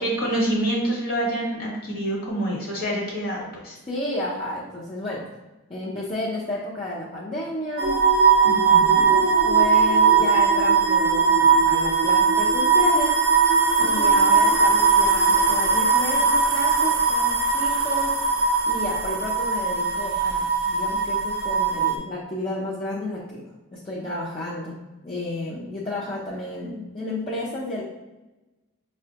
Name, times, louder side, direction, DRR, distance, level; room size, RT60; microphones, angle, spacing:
voice 1, 0.0-3.8 8.4-9.1 13.8-14.3, right 1 dB, 45° left, -3 dB, 1.1 m, -27 dB
voice 2, 3.9-5.2 5.7-8.0 8.5-13.2 13.8-18.1 18.7-23.4 23.7-27.8, left 2 dB, 25° left, -8 dB, 0.5 m, -32 dB
sound 1, 7.8-22.0, right 5 dB, 55° right, 0.5 m, -19 dB
5.8 x 2.1 x 2.8 m, 1.1 s
head